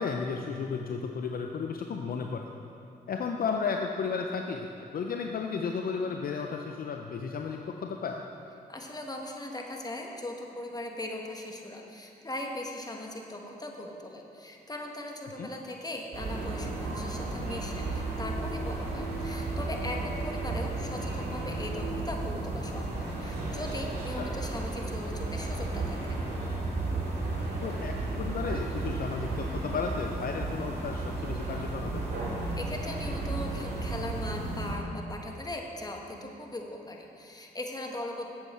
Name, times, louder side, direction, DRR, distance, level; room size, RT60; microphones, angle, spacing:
voice 1, 0.0-2.4 3.1-4.7 4.9-8.2 15.4-15.5 24.2-24.3 27.6-32.0, left 5 dB, 55° left, 3 dB, 0.5 m, -33 dB
voice 2, 8.7-26.2 32.6-38.3, left 1 dB, 20° left, 1 dB, 1.3 m, -39 dB
sound 1, 16.1-34.7, right 2 dB, 60° right, 2.1 m, -33 dB
7.8 x 7.2 x 4.3 m, 2.6 s
supercardioid pair, 45°, 19 cm